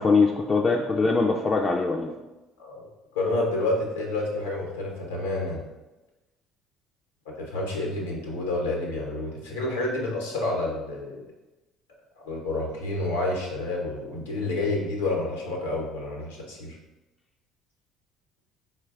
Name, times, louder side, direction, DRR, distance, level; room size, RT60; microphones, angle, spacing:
voice 1, 0.0-2.1, left 4 dB, 30° left, 0 dB, 0.4 m, -22 dB
voice 2, 3.1-5.6 7.4-11.2 12.2-16.8, left 2 dB, 85° left, -1 dB, 0.8 m, -29 dB
4.4 x 2.2 x 3.5 m, 1.1 s
hypercardioid pair, 60°, 0 cm